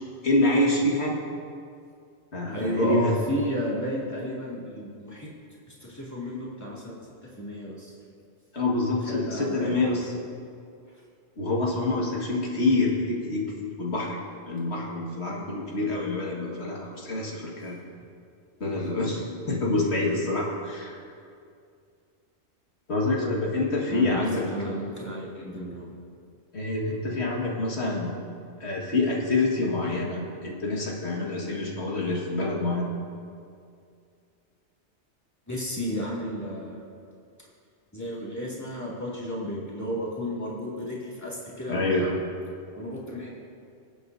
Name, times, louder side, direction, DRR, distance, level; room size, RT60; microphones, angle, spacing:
voice 1, 0.2-1.2 2.3-3.2 8.5-10.1 11.4-17.8 18.6-21.0 22.9-24.5 26.5-28.1 28.6-32.9 41.7-42.0, left 2 dB, 65° left, -3 dB, 2.1 m, -26 dB
voice 2, 2.4-5.3 5.7-6.9 7.2-8.0 9.1-10.0 23.9-25.9 35.5-36.8 37.9-42.2 42.7-43.4, equal, 15° left, -6 dB, 2.5 m, -33 dB
24.0 x 8.2 x 2.7 m, 2.4 s
omnidirectional pair, 1.2 m